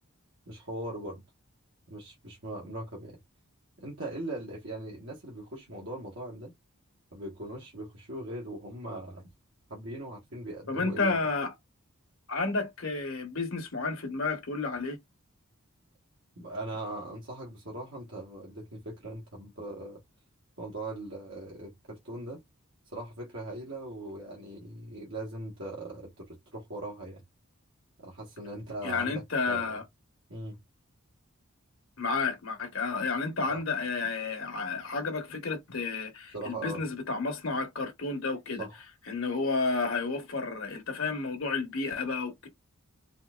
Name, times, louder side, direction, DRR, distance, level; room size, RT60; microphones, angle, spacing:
voice 1, 0.5-1.2 1.9-3.2 3.8-6.5 7.1-9.3 9.7-11.2 16.4-20.0 20.6-22.4 22.9-27.2 28.0-29.8 30.3-30.6 33.5-33.6 36.3-36.8 38.6-38.8, right 1 dB, 65° right, 1.3 m, -40 dB
voice 2, 10.7-11.5 12.3-15.0 28.8-29.8 32.0-38.7 39.1-42.5, left 4 dB, 65° left, 1.2 m, -31 dB
4.1 x 2.6 x 2.4 m
head